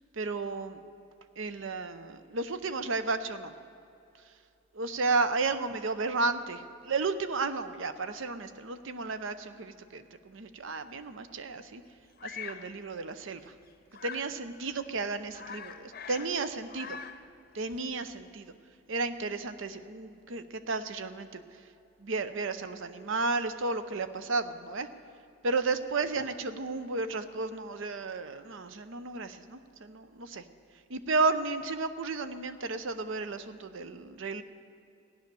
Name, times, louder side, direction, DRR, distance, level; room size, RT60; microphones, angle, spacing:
voice 1, 0.1-0.8 1.4-3.5 4.7-11.8 12.2-13.5 14.0-17.0 17.5-18.5 18.9-21.6 22.0-24.9 25.4-30.4 30.9-34.4, right 3 dB, 60° right, 11 dB, 0.7 m, -33 dB
Bird vocalization bird call bird song, 12.2-12.7 13.9-14.3 14.8-14.9 15.2-16.4 16.6-17.3, left 7 dB, 45° left, 0.7 m, -43 dB
15.5 x 10.5 x 6.9 m, 2.7 s
head